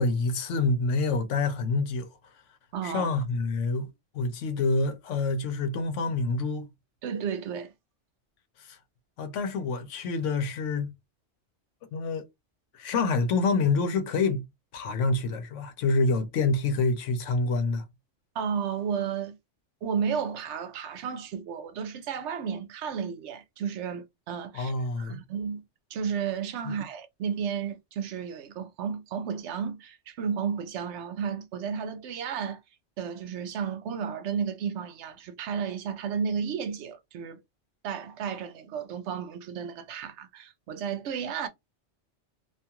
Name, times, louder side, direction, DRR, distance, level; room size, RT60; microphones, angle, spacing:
voice 1, 0.0-2.1 2.8-6.7 8.6-8.8 9.2-10.9 11.9-12.2 12.7-14.4 14.7-17.8 24.5-25.2 26.6-26.8, left 3 dB, 85° left, 1.0 m, -27 dB
voice 2, 2.7-3.1 7.0-7.7 18.3-19.4 19.8-25.6 25.9-32.6 33.0-37.4 37.8-41.5, right 7 dB, 75° right, 0.9 m, -33 dB
2.5 x 2.3 x 2.8 m
omnidirectional pair, 1.2 m